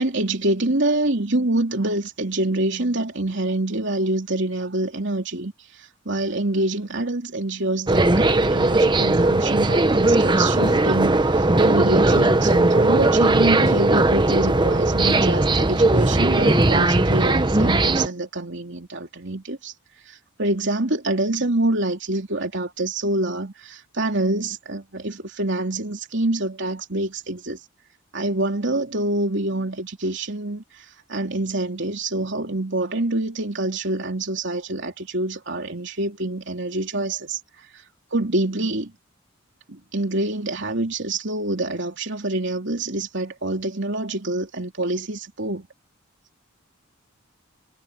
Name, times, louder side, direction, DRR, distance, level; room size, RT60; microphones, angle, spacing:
voice 1, 0.0-5.5 5.8-19.7 20.1-27.6 28.1-30.6 31.1-37.4 38.1-38.9 39.7-45.7, right 2 dB, 60° right, 3.4 m, -26 dB
sound 1, 7.9-18.1, right 2 dB, 20° right, 0.9 m, -18 dB
sound 2, 9.2-9.6 10.6-11.1 11.6-11.7 12.1-13.1 13.6-14.3 14.6-14.8 15.1-15.8 16.5-17.0, equal, 25° left, 7.6 m, -32 dB
head